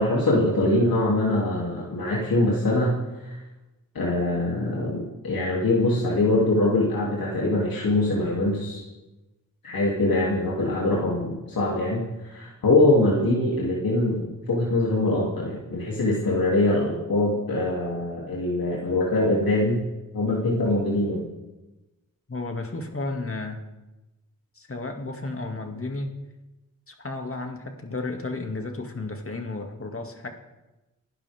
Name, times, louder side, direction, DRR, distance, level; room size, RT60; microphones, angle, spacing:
voice 1, 0.0-3.4 3.9-8.8 9.6-12.0 12.3-19.8 20.1-21.2, left 2 dB, 90° left, -5 dB, 3.0 m, -23 dB
voice 2, 22.3-23.6 24.6-26.1 26.9-30.3, left 2 dB, 40° left, 3 dB, 2.3 m, -33 dB
29.5 x 11.5 x 3.6 m, 1.1 s
cardioid pair, 65°, 34 cm